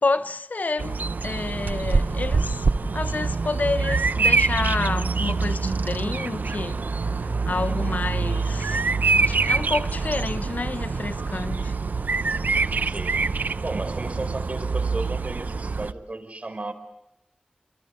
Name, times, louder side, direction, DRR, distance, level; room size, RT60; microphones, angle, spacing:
voice 1, 0.0-6.8 7.2-11.8, left 3 dB, 65° left, 1.0 m, -29 dB
Bird vocalization bird call bird song, 0.8-15.9, right 4 dB, 80° right, 0.8 m, -25 dB
voice 2, 7.7-8.0 12.8-13.2 13.6-16.7, right 2 dB, 45° right, 5.0 m, -34 dB
29.0 x 28.0 x 5.3 m
wide cardioid pair, 70°, 3 cm